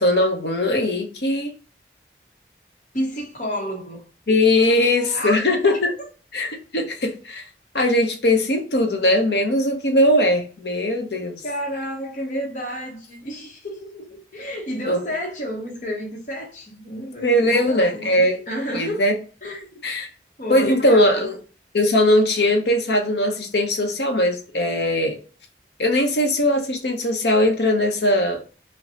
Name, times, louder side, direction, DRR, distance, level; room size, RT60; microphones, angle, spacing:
voice 1, 0.0-1.5 4.3-5.9 6.3-7.5 7.7-11.4 14.9-15.0 17.2-18.4 18.7-19.1 19.8-20.1 20.5-21.4 21.7-25.2 25.8-28.4, left 1 dB, 75° left, 0.9 m, -20 dB
voice 2, 2.9-4.0 4.7-5.4 11.4-19.0 19.4-19.8 20.4-21.3, equal, 45° left, 0.9 m, -31 dB
5.0 x 2.2 x 2.8 m
head